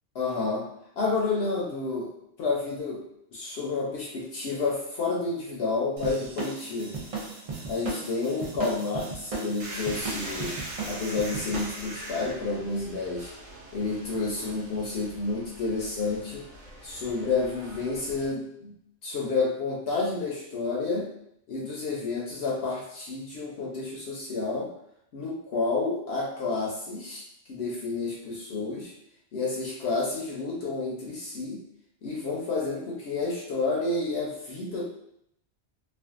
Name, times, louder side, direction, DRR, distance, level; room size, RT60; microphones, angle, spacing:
voice 1, 0.1-0.7 1.0-2.1 2.4-3.0 3.3-7.0 7.7-10.6 10.8-13.3 13.7-16.5 16.8-21.1 21.5-24.7 25.1-28.9 29.3-31.6 32.0-34.9, left 3 dB, 70° left, -3 dB, 0.8 m, -30 dB
sound 1, 6.0-11.8, right 3 dB, 50° right, 0.4 m, -36 dB
sound 2, 9.6-18.3, right 1 dB, 90° right, 1.0 m, -42 dB
2.5 x 2.3 x 2.4 m, 0.74 s
omnidirectional pair, 1.2 m